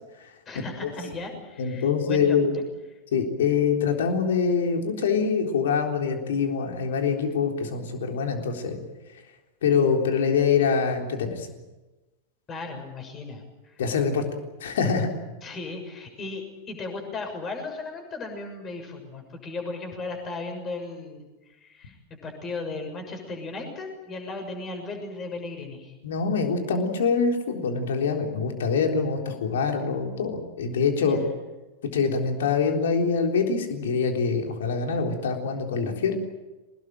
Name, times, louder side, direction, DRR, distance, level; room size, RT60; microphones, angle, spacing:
voice 1, 0.4-2.6 12.5-13.9 15.4-25.9 31.0-31.3, left 3 dB, 25° left, 4 dB, 6.7 m, -36 dB
voice 2, 1.6-2.5 3.1-8.8 9.6-11.5 13.8-14.2 14.6-15.1 26.0-31.2 31.9-36.1, left 5 dB, 60° left, 4 dB, 3.8 m, -24 dB
24.0 x 20.0 x 9.0 m, 1.1 s
figure-of-eight pair, 90°, 0 cm